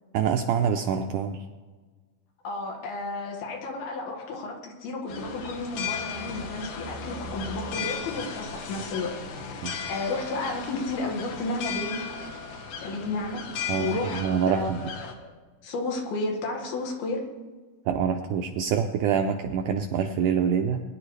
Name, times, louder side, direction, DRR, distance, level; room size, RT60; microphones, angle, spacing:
voice 1, 0.1-1.4 9.6-9.7 13.7-14.8 17.8-20.8, right 7 dB, 80° right, 5 dB, 1.8 m, -26 dB
voice 2, 2.4-9.1 9.4-12.0 12.8-14.2 14.5-15.3 15.6-17.3, left 2 dB, 90° left, 1 dB, 3.7 m, -32 dB
sound 1, 5.1-15.1, left 6 dB, 70° left, 2.7 m, -36 dB
21.0 x 10.5 x 3.3 m, 1.4 s
omnidirectional pair, 4.3 m